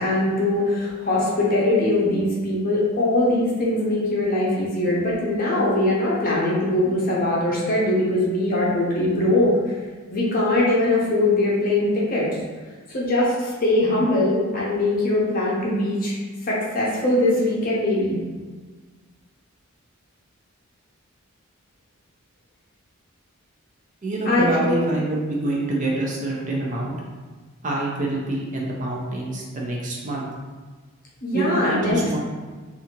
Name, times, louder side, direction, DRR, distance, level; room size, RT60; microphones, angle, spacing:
voice 1, 0.0-9.8 10.1-12.4 12.9-18.2 24.3-24.8 31.2-32.2, left 1 dB, 40° left, -5 dB, 0.6 m, -21 dB
voice 2, 24.0-27.0 27.6-30.3 31.3-32.2, right 2 dB, 35° right, -3 dB, 0.4 m, -26 dB
2.6 x 2.5 x 2.9 m, 1.4 s
head